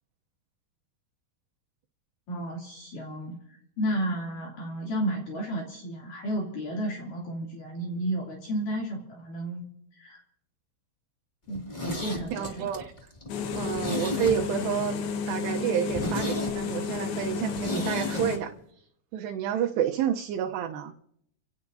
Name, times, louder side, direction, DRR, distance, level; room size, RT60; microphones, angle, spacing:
voice 1, 2.3-9.6 9.9-10.2 11.5-12.7, right 1 dB, 55° left, -3 dB, 4.2 m, -32 dB
Zipper (clothing), 11.5-14.8 15.1-15.2 15.5-15.6 15.9-18.3 18.6-18.7, left 1 dB, 30° left, 0.8 m, -34 dB
voice 2, 12.3-12.9 13.5-15.0 15.3-18.5 19.1-20.9, right 9 dB, 80° right, 1 dB, 2.9 m, -29 dB
sound 1, 13.3-18.4, left 5 dB, 70° left, 3.1 m, -32 dB
29.5 x 17.5 x 2.7 m, 0.71 s
omnidirectional pair, 4.9 m